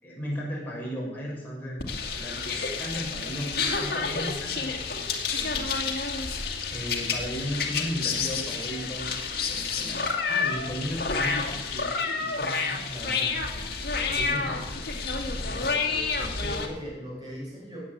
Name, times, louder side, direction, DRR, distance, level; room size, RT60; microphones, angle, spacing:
voice 1, 0.0-6.1 6.7-13.7 14.1-14.9 16.2-16.3, equal, 10° left, -5 dB, 6.4 m, -36 dB
sound 1, 1.8-16.7, left 4 dB, 60° left, 2.3 m, -29 dB
voice 2, 15.3-17.8, equal, 25° right, -4 dB, 6.3 m, -40 dB
17.0 x 8.8 x 8.1 m, 1.0 s
head